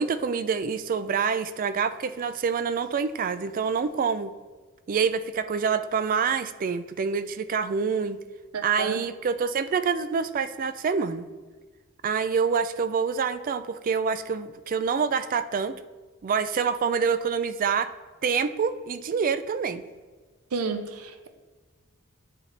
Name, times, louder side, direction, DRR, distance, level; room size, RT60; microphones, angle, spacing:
voice 1, 0.0-4.3 4.9-8.2 8.6-11.3 12.0-15.7 16.2-17.9 18.2-19.8, right 6 dB, 40° right, 0.3 m, -26 dB
voice 2, 8.5-9.0 20.5-21.3, right 4 dB, 85° right, 0.6 m, -31 dB
9.0 x 4.0 x 3.3 m
head